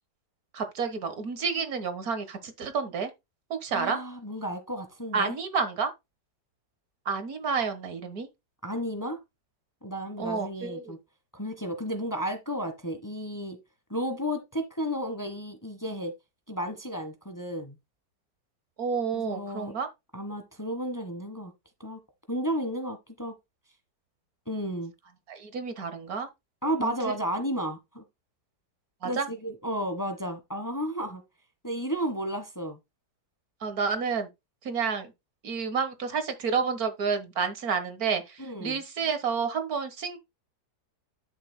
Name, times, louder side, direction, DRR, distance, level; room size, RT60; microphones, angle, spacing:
voice 1, 0.5-3.1 3.5-4.0 5.1-5.9 7.1-8.3 10.2-10.9 18.8-19.9 25.3-26.3 26.8-26.9 29.0-29.3 33.6-34.3 34.6-35.1 35.4-40.2, right 5 dB, 65° right, 1.8 m, -30 dB
voice 2, 3.7-5.4 8.6-9.2 9.8-11.0 11.3-13.6 13.9-16.1 16.5-17.7 19.1-19.7 20.1-21.5 21.8-22.0 22.3-23.3 24.5-24.9 26.6-28.0 29.0-31.2 31.6-32.8 38.4-38.8, equal, 15° left, 1.2 m, -33 dB
11.5 x 6.4 x 2.2 m
omnidirectional pair, 1.7 m